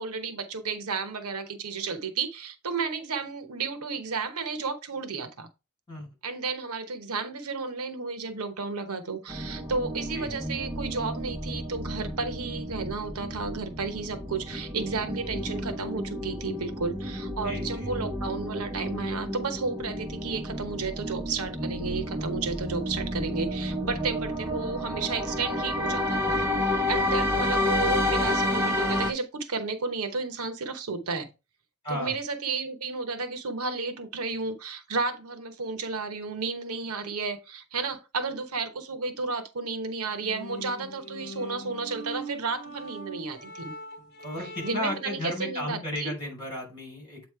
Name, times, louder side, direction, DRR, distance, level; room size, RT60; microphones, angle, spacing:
voice 1, 0.0-5.5 6.2-31.3 31.9-43.7 44.6-46.1, right 4 dB, 85° right, 0.9 m, -32 dB
sound 1, 9.3-29.1, left 1 dB, 10° right, 0.8 m, -30 dB
voice 2, 17.4-17.9 31.8-32.2 44.2-47.3, left 1 dB, 20° left, 3.9 m, -34 dB
sound 2, 40.1-45.1, right 1 dB, 50° left, 1.1 m, -42 dB
8.1 x 3.1 x 4.7 m
head